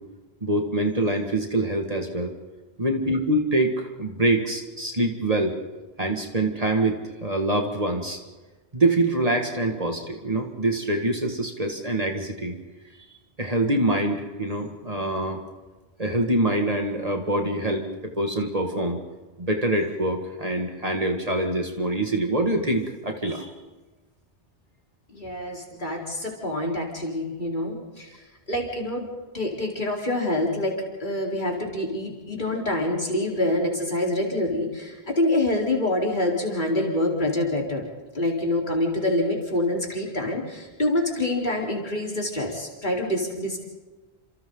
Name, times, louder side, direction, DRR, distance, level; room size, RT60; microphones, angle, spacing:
voice 1, 0.4-2.3 2.8-5.5 6.0-8.2 8.7-12.6 13.4-15.4 16.0-17.9 18.2-19.0 19.4-23.5, right 1 dB, 35° right, 2 dB, 2.3 m, -25 dB
voice 2, 25.1-28.2 28.5-29.1 29.3-37.8 38.1-43.6, left 1 dB, 50° left, -1 dB, 4.5 m, -26 dB
30.0 x 27.0 x 4.0 m, 1.2 s
omnidirectional pair, 1.1 m